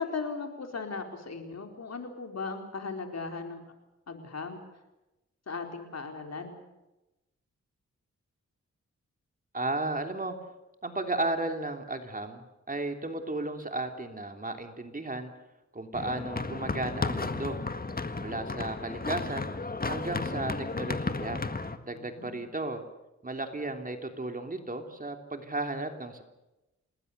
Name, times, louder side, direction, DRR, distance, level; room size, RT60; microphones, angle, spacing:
voice 1, 0.0-3.6 4.1-4.6 5.5-6.6 21.9-22.4, left 4 dB, 60° left, 4 dB, 4.3 m, -37 dB
voice 2, 9.5-10.3 10.8-15.3 15.7-17.6 18.1-19.5 19.9-21.4 21.8-22.8 23.2-26.2, right 2 dB, 30° right, 5 dB, 3.2 m, -34 dB
sound 1, 15.9-21.8, left 3 dB, 30° left, 1.8 m, -33 dB
28.5 x 20.0 x 6.8 m, 1.0 s
cardioid pair, 80°, 29 cm